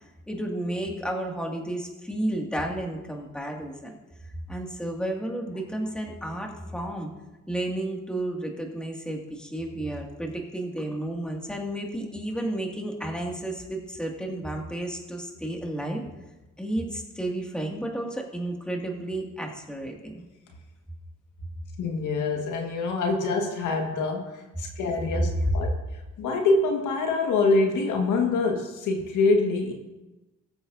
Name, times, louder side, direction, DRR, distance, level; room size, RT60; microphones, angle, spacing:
voice 1, 0.3-4.0 4.5-7.1 7.5-16.0 16.6-20.2, right 1 dB, 5° left, 0 dB, 2.3 m, -32 dB
voice 2, 21.8-29.7, left 3 dB, 80° left, 2 dB, 1.8 m, -25 dB
20.5 x 7.8 x 2.7 m, 1.1 s
cardioid pair, 90°, 30 cm